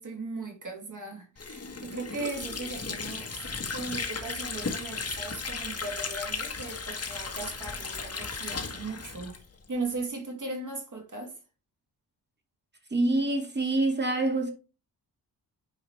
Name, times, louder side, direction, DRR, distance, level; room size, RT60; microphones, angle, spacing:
voice 1, 0.0-9.3 9.7-11.3, right 3 dB, 45° right, 2.8 m, -37 dB
Water / Sink (filling or washing), 1.4-9.9, left 4 dB, 35° left, 1.5 m, -35 dB
voice 2, 12.9-14.5, right 2 dB, 25° right, 2.2 m, -26 dB
9.6 x 4.8 x 3.3 m
wide cardioid pair, 120°, 42 cm